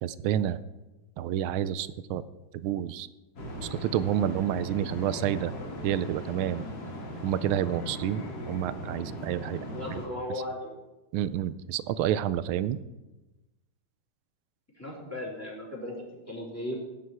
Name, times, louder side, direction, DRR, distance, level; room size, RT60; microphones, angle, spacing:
voice 1, 0.0-0.6 1.2-2.2 2.5-3.1 3.6-5.5 5.8-6.7 7.2-9.6 9.9-10.0 11.1-12.8, right 11 dB, 85° right, 15 dB, 1.5 m, -29 dB
sound 1, 3.4-10.1, right 1 dB, 70° left, 3.1 m, -39 dB
sound 2, 4.7-8.7, left 5 dB, 55° left, 1.7 m, -44 dB
voice 2, 9.7-10.7 14.8-16.7, left 1 dB, 5° left, -3 dB, 3.6 m, -36 dB
17.0 x 9.3 x 4.7 m, 1.1 s
omnidirectional pair, 2.2 m